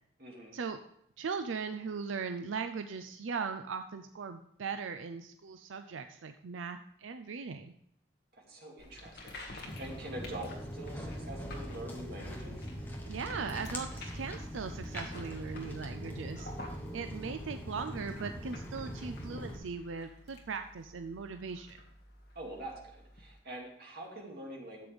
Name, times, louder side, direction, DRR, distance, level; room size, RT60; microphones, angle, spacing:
voice 1, 0.2-0.6 8.3-12.7 22.3-24.9, right 1 dB, 50° right, -1 dB, 2.5 m, -45 dB
voice 2, 1.2-7.7 13.1-16.5 16.9-21.8, right 5 dB, 85° right, 8 dB, 0.5 m, -39 dB
sound 1, 8.8-23.4, left 1 dB, 55° left, 1.8 m, -50 dB
Walk footsteps, 9.7-19.6, equal, 10° left, 1.2 m, -42 dB
12.5 x 7.8 x 3.5 m, 0.75 s
head